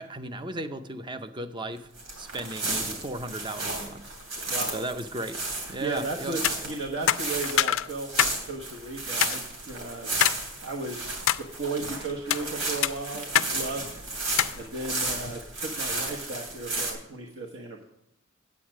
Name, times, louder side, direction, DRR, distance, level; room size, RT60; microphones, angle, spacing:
voice 1, 0.0-1.9 2.2-4.1 4.7-5.4 5.7-6.4, right 2 dB, 25° right, 0.6 m, -35 dB
sound 1, 2.0-16.9, right 2 dB, 90° right, 2.9 m, -33 dB
voice 2, 4.5-4.8 5.8-10.1 10.6-14.0 14.5-17.8, right 2 dB, 60° right, 1.2 m, -35 dB
sound 2, 6.3-6.6 7.1-8.4 8.7-8.8 9.2-9.4 10.2-10.4 10.9-11.4 12.1-12.4 12.8-13.5 13.8-13.9 14.4-14.6, left 11 dB, 85° left, 0.4 m, -24 dB
8.8 x 8.4 x 6.1 m
head